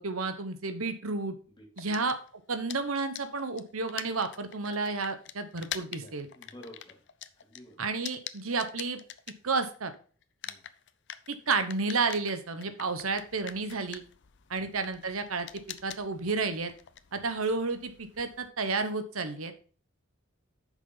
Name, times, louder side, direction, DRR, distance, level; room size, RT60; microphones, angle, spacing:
voice 1, 0.0-1.3 1.8-2.1 2.5-6.3 7.8-9.0 9.4-9.9 11.3-14.0 14.5-15.5 15.8-16.7 17.1-19.5, right 4 dB, 80° right, 9 dB, 1.1 m, -31 dB
voice 2, 1.5-2.1 5.8-7.0 7.4-7.8 10.4-10.6 14.5-14.8 17.1-17.3, equal, 25° left, 1 dB, 2.9 m, -52 dB
Game Controller, 1.8-9.9 10.2-18.5, left 11 dB, 60° left, 0.6 m, -44 dB
9.3 x 6.2 x 4.0 m, 0.41 s
head